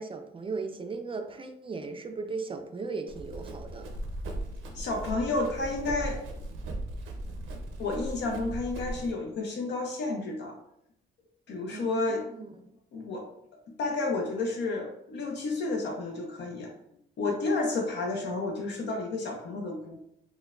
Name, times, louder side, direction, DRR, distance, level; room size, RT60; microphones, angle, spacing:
voice 1, 0.0-3.9 11.7-12.0 12.3-12.5, right 4 dB, 25° right, 5 dB, 0.4 m, -37 dB
Run, 3.1-9.1, right 1 dB, 85° right, 0.7 m, -38 dB
voice 2, 4.7-6.2 7.8-10.6 11.5-12.2 12.9-13.3 13.8-16.7 17.2-20.0, left 3 dB, 60° left, 1 dB, 0.6 m, -31 dB
4.4 x 2.2 x 2.3 m, 0.76 s
cardioid pair, 90°, 20 cm